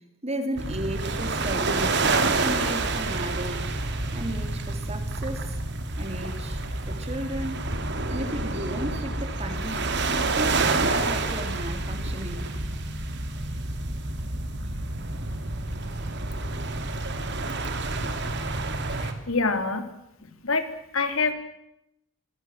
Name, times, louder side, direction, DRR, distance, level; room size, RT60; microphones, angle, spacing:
voice 1, 0.2-2.1 2.4-3.8 4.1-5.6 6.0-7.7 8.1-9.9 10.4-12.5, right 1 dB, 30° right, 6 dB, 3.9 m, -34 dB
sound 1, 0.6-19.1, right 3 dB, 50° right, 3.4 m, -28 dB
voice 2, 19.0-19.8 20.4-20.7 20.9-21.3, left 4 dB, 70° left, 8 dB, 3.3 m, -26 dB
25.5 x 21.0 x 7.7 m, 0.83 s
head